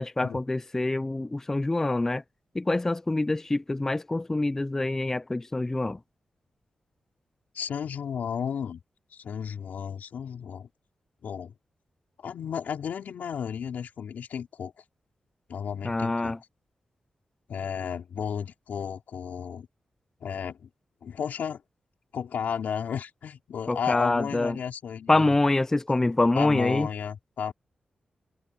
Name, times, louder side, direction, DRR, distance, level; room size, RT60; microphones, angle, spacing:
voice 1, 0.0-2.2 2.6-6.0 15.8-16.4 23.7-24.6 25.1-26.9, left 2 dB, 15° left, 0.4 m, -25 dB
voice 2, 7.5-8.8 9.1-10.7 11.2-11.5 12.2-14.7 15.5-16.3 17.5-19.7 20.2-20.7 21.0-21.6 22.1-25.3 26.3-27.5, left 7 dB, 85° left, 4.1 m, -33 dB
wide cardioid pair, 145°, 3 cm